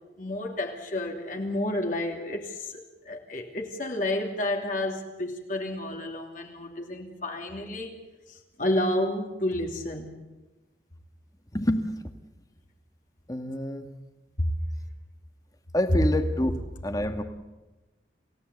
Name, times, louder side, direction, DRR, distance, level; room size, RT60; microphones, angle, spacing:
voice 1, 0.2-7.9 8.3-10.2 14.4-14.5, left 1 dB, 45° left, 2 dB, 2.8 m, -30 dB
voice 2, 11.5-12.1 13.3-13.9 15.7-16.5 16.8-17.2, left 1 dB, 20° left, 8 dB, 1.8 m, -27 dB
28.5 x 16.5 x 8.2 m, 1.1 s
head